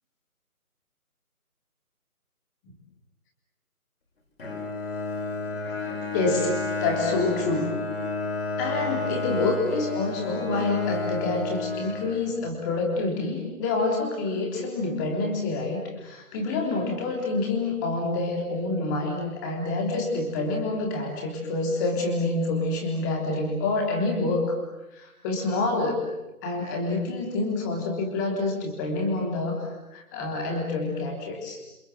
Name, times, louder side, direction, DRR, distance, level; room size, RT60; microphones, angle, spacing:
Bowed string instrument, 4.4-12.6, left 3 dB, 40° left, 5.5 m, -31 dB
voice 1, 6.1-7.8 8.6-24.6 24.9-26.0 26.4-31.6, left 3 dB, 10° left, 1 dB, 3.4 m, -27 dB
28.0 x 27.5 x 7.7 m, 0.95 s
figure-of-eight pair, 155°, 45 cm